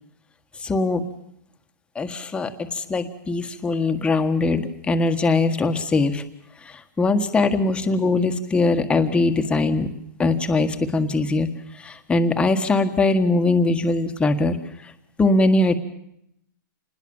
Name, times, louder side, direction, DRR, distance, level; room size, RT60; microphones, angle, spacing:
voice 1, 0.6-1.0 1.9-6.2 7.0-9.9 10.2-11.5 11.8-14.5 15.2-15.8, left 3 dB, 10° left, 7 dB, 1.7 m, -21 dB
27.5 x 20.5 x 7.3 m, 0.76 s
hypercardioid pair, 145°, 11 cm